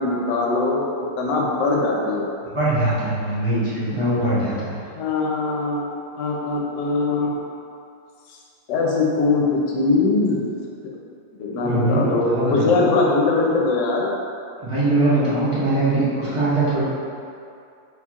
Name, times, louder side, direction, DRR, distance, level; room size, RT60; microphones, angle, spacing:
voice 1, 0.0-2.3 4.9-5.9 6.1-7.3 8.7-10.5 11.4-14.1, left 3 dB, 70° left, -2 dB, 1.2 m, -21 dB
voice 2, 2.5-4.8 11.6-12.9 14.6-16.8, right 2 dB, 30° right, -12 dB, 0.5 m, -21 dB
4.3 x 4.0 x 2.4 m, 2.5 s
omnidirectional pair, 2.1 m